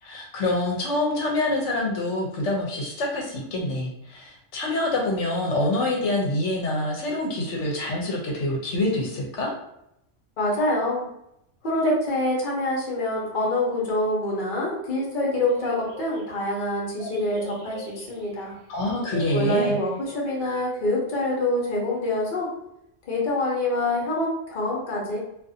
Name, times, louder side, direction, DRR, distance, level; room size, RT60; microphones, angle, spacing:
voice 1, 0.0-9.5 18.7-19.8, left 2 dB, 75° left, -1 dB, 1.0 m, -26 dB
voice 2, 10.4-11.0 11.6-18.5 19.3-22.5 23.0-25.2, left 1 dB, 45° left, -2 dB, 0.8 m, -25 dB
sound 1, 15.3-20.3 20.6-20.8, right 2 dB, 75° right, 0.9 m, -43 dB
2.5 x 2.4 x 2.6 m, 0.80 s
omnidirectional pair, 1.3 m